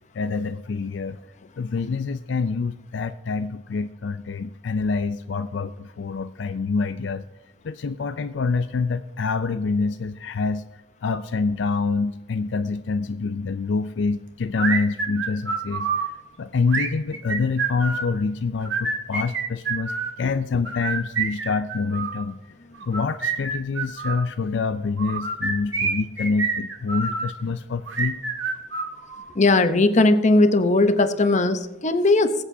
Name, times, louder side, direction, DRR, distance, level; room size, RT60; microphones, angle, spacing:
voice 1, 0.1-1.2 1.6-7.2 7.6-10.6 11.0-15.9 16.4-19.9 20.2-22.4 22.9-28.2, left 4 dB, 70° left, 10 dB, 0.4 m, -26 dB
sound 1, 14.6-16.1 16.7-18.1 18.6-20.2 20.7-22.2 22.8-24.2 25.0-27.3 27.9-29.3, right 4 dB, 70° right, 1.7 m, -27 dB
voice 2, 29.4-32.4, left 2 dB, 40° left, 9 dB, 0.8 m, -18 dB
21.5 x 8.1 x 2.7 m, 1.1 s
head